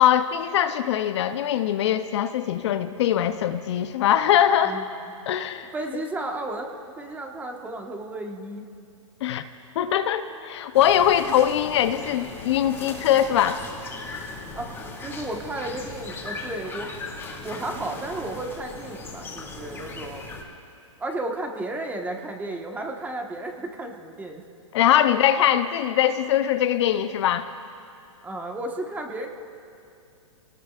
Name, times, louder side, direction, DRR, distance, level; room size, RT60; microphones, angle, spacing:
voice 1, 0.0-4.9 5.3-5.7 9.2-9.4 9.8-13.6 24.7-27.5, left 10 dB, 55° left, 10 dB, 0.7 m, -22 dB
voice 2, 5.7-6.7 7.0-8.7 14.5-14.7 15.0-16.9 17.4-20.2 21.0-24.4 28.2-29.3, right 2 dB, 10° right, 2 dB, 1.4 m, -33 dB
sound 1, 10.7-20.4, left 3 dB, 15° left, 2.6 m, -38 dB
28.5 x 19.0 x 2.5 m, 2.6 s
hypercardioid pair, 130°, 17 cm